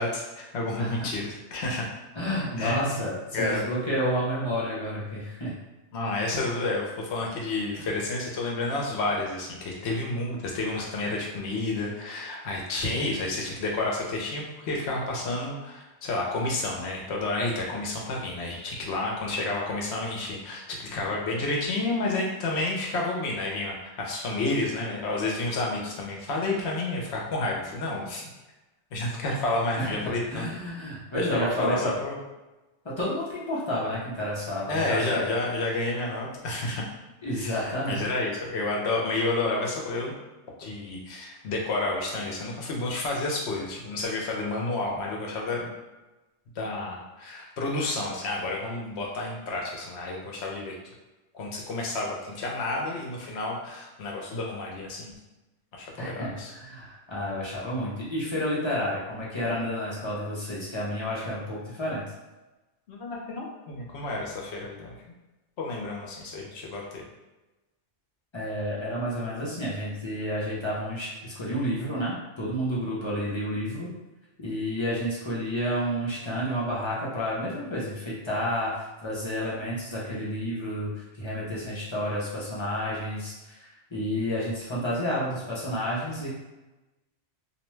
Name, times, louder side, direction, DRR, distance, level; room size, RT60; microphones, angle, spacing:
voice 1, 0.0-1.9 2.6-3.0 3.3-3.6 5.9-28.2 28.9-30.5 31.1-32.2 34.7-36.8 37.3-40.1 40.6-45.7 46.6-50.7 51.3-55.1 55.7-56.5 62.9-64.9 65.6-67.0, left 2 dB, 65° left, -2 dB, 0.9 m, -30 dB
voice 2, 0.8-1.1 2.2-5.5 29.8-31.9 32.8-35.3 37.2-38.1 56.0-62.0 68.3-73.9 74.4-86.3, equal, 30° left, -7 dB, 0.5 m, -30 dB
2.6 x 2.2 x 3.0 m, 1.1 s
omnidirectional pair, 1.2 m